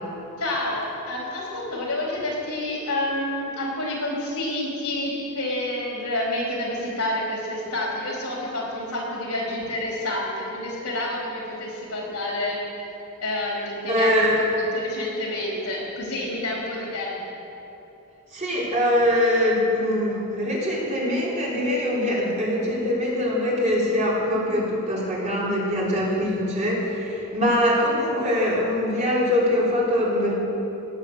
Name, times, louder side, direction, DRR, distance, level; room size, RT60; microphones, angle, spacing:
voice 1, 0.4-12.6 13.2-14.2 14.7-17.2, left 1 dB, 90° left, -4 dB, 4.0 m, -28 dB
voice 2, 13.9-14.4 18.3-30.3, left 1 dB, 35° right, -5 dB, 3.5 m, -23 dB
17.0 x 8.9 x 6.5 m, 3.0 s
head